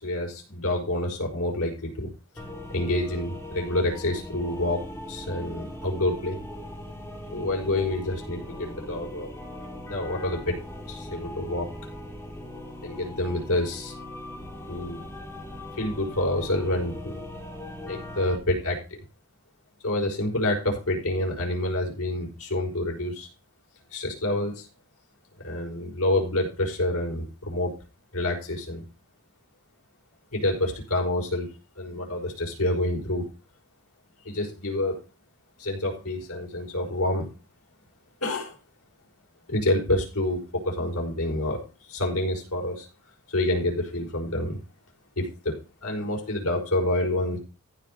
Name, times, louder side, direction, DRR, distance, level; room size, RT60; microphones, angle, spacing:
voice 1, 0.0-2.1 2.7-4.8 5.1-6.4 7.3-9.3 9.8-10.6 10.9-11.7 12.8-13.9 14.7-15.1 15.8-17.2 17.8-19.0 19.8-23.3 23.9-24.7 25.4-27.7 28.1-28.8 30.3-31.5 31.8-33.3 34.3-35.0 35.6-37.3 38.2-38.6 39.5-41.6 41.9-42.9 43.3-44.6 45.2-45.5 45.8-47.4, left 1 dB, 90° left, 0 dB, 5.3 m, -28 dB
sound 1, 2.4-18.4, left 1 dB, 10° left, 2.6 m, -40 dB
14.5 x 5.2 x 5.5 m, 0.32 s
head